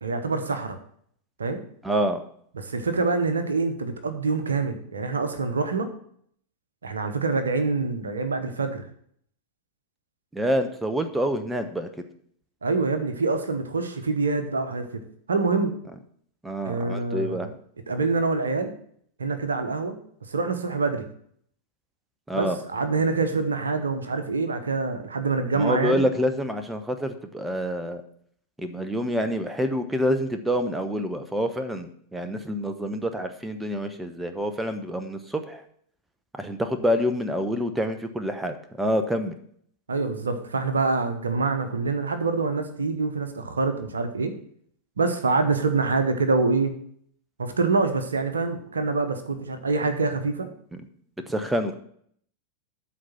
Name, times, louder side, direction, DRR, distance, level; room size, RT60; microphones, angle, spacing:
voice 1, 0.0-0.8 1.4-1.6 2.5-5.9 6.8-8.8 12.6-15.0 15.3-15.7 16.6-17.5 17.9-18.7 19.2-20.0 20.3-21.0 22.3-26.0 39.9-44.3 45.0-46.8 47.4-50.5, right 4 dB, 70° right, 9 dB, 1.0 m, -25 dB
voice 2, 1.8-2.2 10.3-11.9 16.4-17.5 22.3-22.6 25.5-28.0 28.6-35.6 36.4-39.3 51.3-51.7, equal, 5° right, 8 dB, 0.8 m, -27 dB
12.5 x 4.2 x 5.8 m, 0.63 s
figure-of-eight pair, 90°, 0 cm